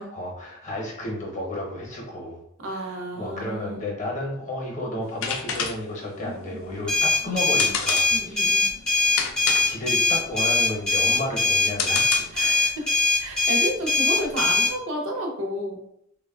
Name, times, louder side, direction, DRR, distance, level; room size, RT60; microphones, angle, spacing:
voice 1, 0.0-2.4 2.7-8.4 9.6-12.3, left 1 dB, 35° left, -1 dB, 0.7 m, -32 dB
voice 2, 2.6-3.9 6.2-6.8 7.2-7.7 8.1-8.7 12.3-12.9 13.2-15.8, right 1 dB, 70° right, 0 dB, 0.6 m, -32 dB
sound 1, 5.0-12.6, left 6 dB, 75° left, 0.4 m, -31 dB
sound 2, 6.9-14.7, left 3 dB, 5° left, 0.5 m, -22 dB
3.1 x 2.2 x 2.3 m, 0.73 s
head